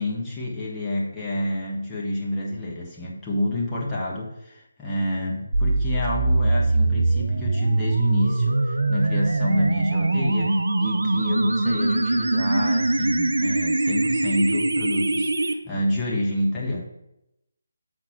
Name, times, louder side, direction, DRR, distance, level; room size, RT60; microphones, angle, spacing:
voice 1, 0.0-16.8, left 1 dB, 10° left, -6 dB, 1.3 m, -28 dB
sound 1, 5.5-15.5, right 2 dB, 70° right, 0.5 m, -22 dB
5.9 x 4.3 x 5.9 m, 0.86 s
figure-of-eight pair, 155°, 0 cm